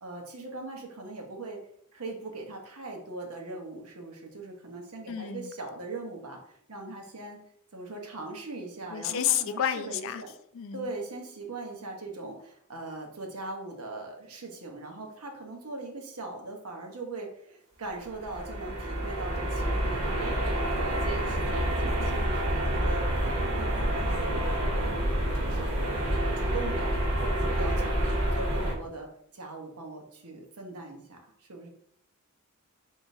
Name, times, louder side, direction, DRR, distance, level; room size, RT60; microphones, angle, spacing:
voice 1, 0.0-1.6 1.9-7.4 7.7-10.3 10.7-24.9 25.3-27.0 27.2-31.7, right 2 dB, 85° right, 1 dB, 1.0 m, -40 dB
voice 2, 5.1-5.5 8.9-10.2 10.5-10.8, left 10 dB, 60° left, 11 dB, 0.3 m, -30 dB
sound 1, 18.1-28.7, right 1 dB, 65° right, 1.4 m, -28 dB
4.6 x 3.6 x 2.7 m, 0.69 s
head